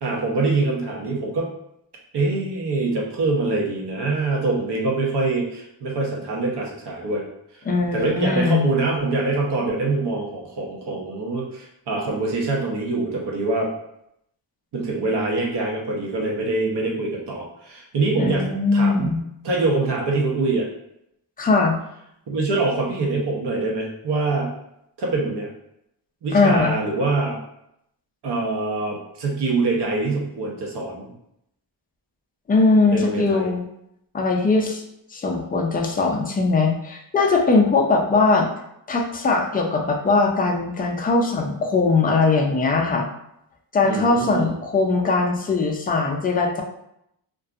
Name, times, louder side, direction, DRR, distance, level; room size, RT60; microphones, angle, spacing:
voice 1, 0.0-1.5 2.1-7.2 7.5-7.6 7.9-13.7 14.7-19.2 19.4-20.7 22.3-24.5 25.0-25.5 26.2-27.4 28.2-31.1 32.8-33.5 43.8-44.5, right 3 dB, 60° right, -2 dB, 0.8 m, -24 dB
voice 2, 7.7-8.7 18.2-19.2 21.4-21.8 26.3-26.7 32.5-33.7 34.1-34.8 35.1-38.5 38.9-43.1 43.7-46.6, left 3 dB, 20° left, 1 dB, 0.3 m, -20 dB
2.5 x 2.3 x 2.4 m, 0.77 s
cardioid pair, 95°, 46 cm